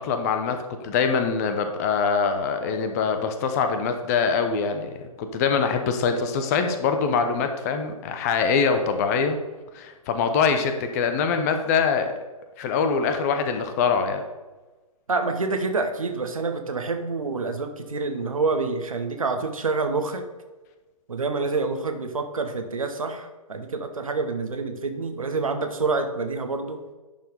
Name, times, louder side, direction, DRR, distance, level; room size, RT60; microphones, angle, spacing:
voice 1, 0.0-9.4 9.7-12.1 12.6-14.2, left 5 dB, 25° left, 7 dB, 0.8 m, -24 dB
voice 2, 15.1-20.2 21.1-26.8, right 3 dB, 65° right, 6 dB, 1.2 m, -27 dB
10.5 x 4.6 x 5.3 m, 1.2 s
figure-of-eight pair, 125°, 19 cm